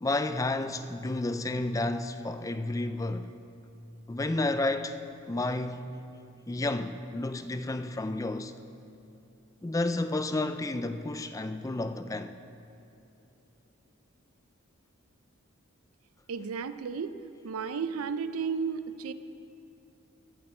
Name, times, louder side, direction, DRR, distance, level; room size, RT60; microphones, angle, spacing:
voice 1, 0.0-3.3 4.1-5.0 5.3-6.0 6.5-8.5 9.6-12.4, left 2 dB, 15° left, 0.3 m, -31 dB
voice 2, 16.3-17.1 17.4-19.1, right 6 dB, 85° right, 0.5 m, -33 dB
19.0 x 8.5 x 4.4 m
head